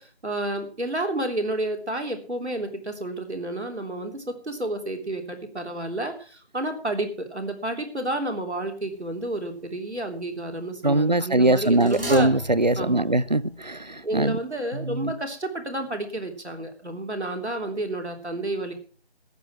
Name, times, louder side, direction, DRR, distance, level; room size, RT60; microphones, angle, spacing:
voice 1, 0.0-12.3 12.8-13.0 14.0-18.7, right 1 dB, 90° right, 3.5 m, -30 dB
sound 1, 9.0-9.3 11.4-14.2 14.5-14.6, equal, 60° right, 4.2 m, -38 dB
voice 2, 10.8-14.4 14.7-15.1, right 2 dB, 40° right, 0.5 m, -22 dB
14.0 x 9.6 x 6.0 m
figure-of-eight pair, 170°, 33 cm